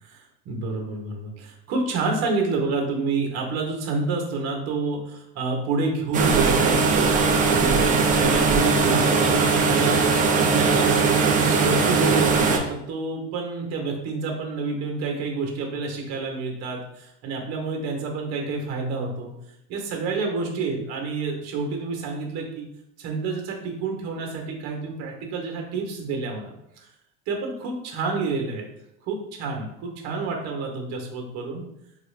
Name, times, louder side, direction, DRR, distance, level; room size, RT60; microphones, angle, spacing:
voice 1, 0.1-19.3 19.7-22.7 23.0-26.9 27.3-28.7 29.1-31.6, right 3 dB, 55° right, 2 dB, 1.1 m, -28 dB
sound 1, 6.1-12.6, right 4 dB, 25° right, 0.5 m, -20 dB
4.1 x 2.4 x 3.2 m, 0.81 s
supercardioid pair, 125°, 30 cm